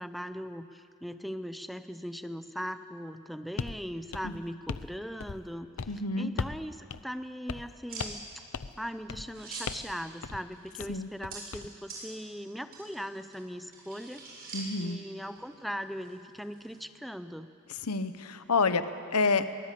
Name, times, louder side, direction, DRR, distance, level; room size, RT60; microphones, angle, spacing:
voice 1, 0.0-5.9 6.2-8.3 8.8-14.2 14.8-17.5, equal, ahead, 10 dB, 0.6 m, -39 dB
sound 1, 3.6-3.8 4.1-4.9 5.2-5.5 5.8-6.0 6.4-6.6 6.9-7.0 7.5-7.7 8.0-8.3 8.5-8.8 9.1-9.3 9.7-9.9 10.2-10.4 10.8-11.7, left 5 dB, 65° left, 0.6 m, -37 dB
voice 2, 5.9-6.3 10.9-11.1 14.5-15.0 17.8-18.8 19.1-19.5, left 4 dB, 85° left, 11 dB, 1.0 m, -28 dB
sound 2, 7.9-16.8, right 3 dB, 45° right, 7.4 m, -47 dB
23.5 x 18.5 x 8.4 m, 2.5 s
head